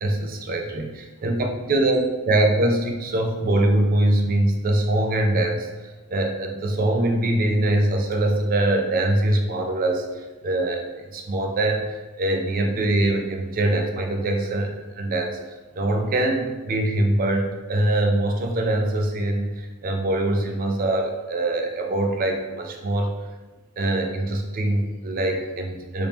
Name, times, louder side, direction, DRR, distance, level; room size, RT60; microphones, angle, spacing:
voice 1, 0.0-15.4 15.8-23.1 23.8-26.1, right 1 dB, 40° right, 2 dB, 0.4 m, -23 dB
3.4 x 3.1 x 2.8 m, 1.2 s
head